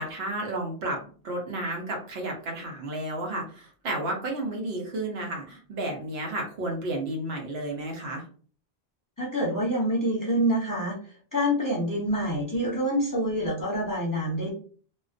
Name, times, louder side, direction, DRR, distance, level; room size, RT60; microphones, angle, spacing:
voice 1, 0.0-8.2, right 1 dB, 70° right, 1 dB, 0.9 m, -32 dB
voice 2, 9.2-11.0 11.3-14.5, equal, 20° left, -5 dB, 0.6 m, -26 dB
2.4 x 2.2 x 2.4 m, 0.42 s
omnidirectional pair, 1.1 m